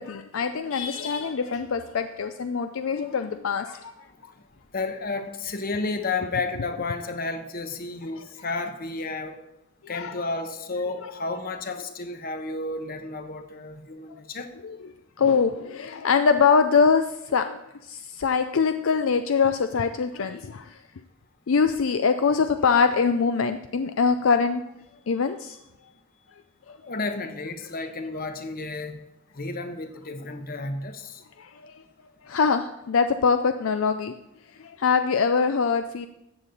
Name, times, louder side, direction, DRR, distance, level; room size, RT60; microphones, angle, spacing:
voice 1, 0.0-3.9 8.2-8.3 9.8-10.2 14.6-14.8 15.2-20.8 21.5-24.7 25.1-25.6 26.7-26.8 31.4-31.7 32.2-34.1 34.6-36.1, left 5 dB, 70° left, 9 dB, 0.5 m, -23 dB
voice 2, 4.7-9.4 9.9-14.5 26.9-29.0 29.4-31.1, left 3 dB, 45° left, 7 dB, 1.0 m, -32 dB
13.5 x 8.2 x 4.0 m, 0.86 s
head